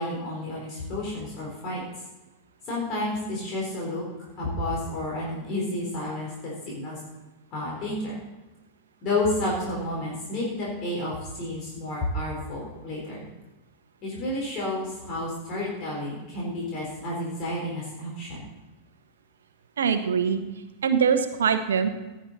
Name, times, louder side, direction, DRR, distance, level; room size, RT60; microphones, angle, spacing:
voice 1, 0.0-1.8 2.7-4.0 4.4-7.0 7.5-8.1 9.0-13.3 14.0-18.4, left 1 dB, 35° left, -4 dB, 4.0 m, -31 dB
voice 2, 19.8-20.4 20.8-21.9, right 7 dB, 65° right, 9 dB, 1.0 m, -23 dB
17.5 x 7.6 x 4.1 m, 1.1 s
figure-of-eight pair, 90°, 0 cm